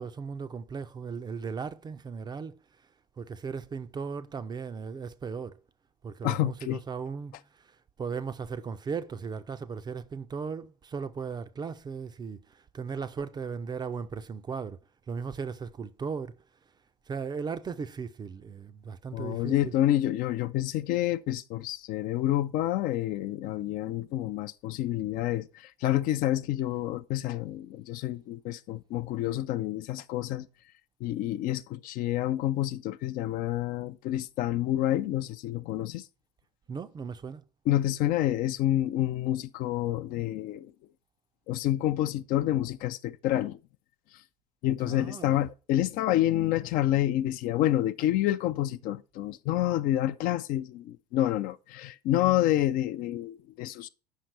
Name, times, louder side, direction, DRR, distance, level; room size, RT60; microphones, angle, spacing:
voice 1, 0.0-2.6 3.2-5.6 6.0-7.3 8.0-12.4 12.7-14.8 15.1-16.4 17.1-19.7 36.7-37.4 44.8-45.4, right 5 dB, 20° right, 0.5 m, -37 dB
voice 2, 6.2-6.8 19.1-30.5 31.0-36.1 37.7-40.7 41.5-43.6 44.6-53.9, left 13 dB, 45° left, 0.5 m, -28 dB
8.2 x 5.8 x 4.6 m
figure-of-eight pair, 65°, 20 cm